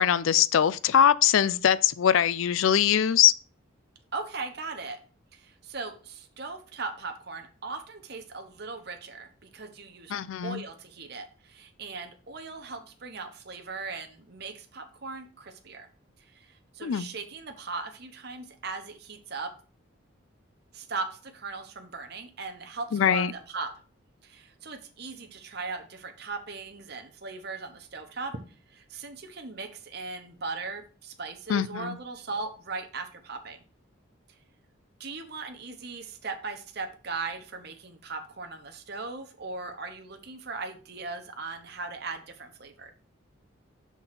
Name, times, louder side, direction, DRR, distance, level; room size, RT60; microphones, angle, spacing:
voice 1, 0.0-3.3 10.1-10.6 16.8-17.1 22.9-23.3 31.5-32.0, left 9 dB, 70° left, 0.4 m, -22 dB
voice 2, 4.1-5.0 5.3-15.9 16.3-19.5 20.7-23.7 24.2-28.4 28.7-33.6 35.0-42.9, right 4 dB, 50° right, 0.9 m, -38 dB
6.1 x 3.8 x 5.7 m
head